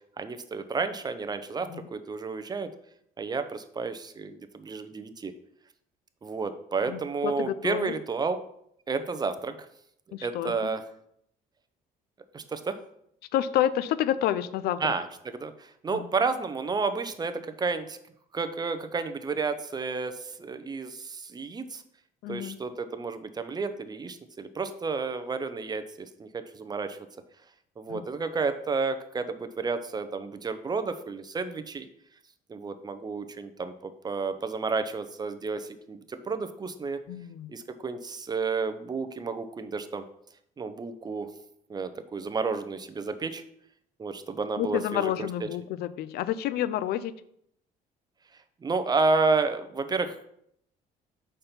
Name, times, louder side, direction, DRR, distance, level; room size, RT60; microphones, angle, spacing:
voice 1, 0.2-2.7 3.2-5.3 6.2-8.4 8.9-9.6 10.2-10.8 12.3-12.8 14.8-18.0 18.3-21.8 22.3-27.0 27.8-31.9 32.5-37.0 37.5-40.1 40.6-41.3 41.7-43.4 44.0-45.5 48.6-50.2, right 4 dB, 25° right, 9 dB, 0.6 m, -31 dB
voice 2, 6.9-7.9 10.1-10.5 13.3-14.8 15.9-16.0 22.2-22.6 27.9-28.0 37.1-37.5 44.6-47.1, left 11 dB, 70° left, 15 dB, 0.4 m, -29 dB
5.7 x 4.3 x 5.2 m, 0.72 s
cardioid pair, 110°, 17 cm